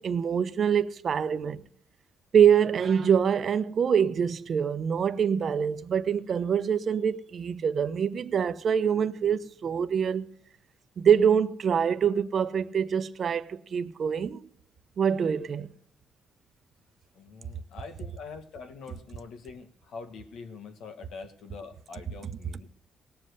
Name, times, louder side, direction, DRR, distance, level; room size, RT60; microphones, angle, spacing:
voice 1, 0.0-1.6 2.3-10.3 11.0-14.5 15.0-15.7, right 7 dB, 50° right, 0.9 m, -25 dB
voice 2, 17.1-22.7, left 5 dB, 75° left, 1.8 m, -44 dB
19.0 x 7.6 x 6.6 m
cardioid pair, 90°, 0 cm